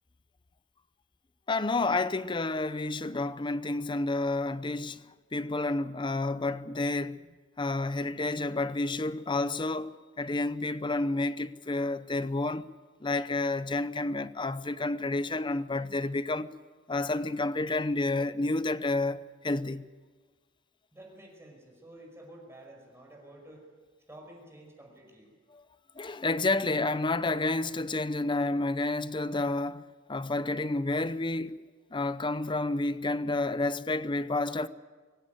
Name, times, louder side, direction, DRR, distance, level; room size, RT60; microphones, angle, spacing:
voice 1, 1.5-5.0 5.3-7.2 7.6-12.7 13.0-16.5 16.9-19.9 25.5-25.6 26.0-29.8 30.1-31.6 31.9-34.7, left 2 dB, 25° left, 0.7 m, -30 dB
voice 2, 20.9-23.7 24.1-25.3, right 1 dB, 15° right, 5.4 m, -50 dB
23.5 x 16.5 x 9.3 m
head